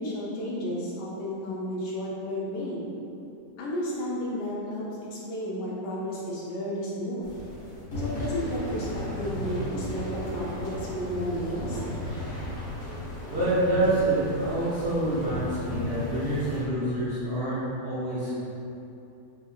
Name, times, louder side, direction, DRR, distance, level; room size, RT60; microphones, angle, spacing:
voice 1, 0.0-2.9 3.6-4.8 5.1-7.3 8.0-11.8, equal, 75° left, -5 dB, 1.1 m, -32 dB
sound 1, 7.2-16.6, left 1 dB, 45° left, 1.0 m, -35 dB
voice 2, 13.3-18.3, right 1 dB, 50° right, -13 dB, 0.9 m, -27 dB
4.9 x 2.7 x 2.3 m, 2.8 s
omnidirectional pair, 2.0 m